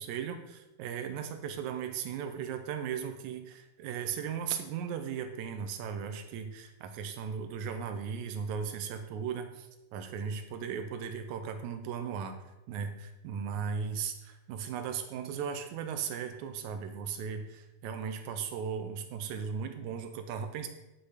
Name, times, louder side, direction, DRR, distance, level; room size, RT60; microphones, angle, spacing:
voice 1, 0.0-12.4 12.7-20.7, right 7 dB, 80° right, 7 dB, 2.1 m, -37 dB
10.0 x 4.2 x 4.9 m, 0.97 s
omnidirectional pair, 3.6 m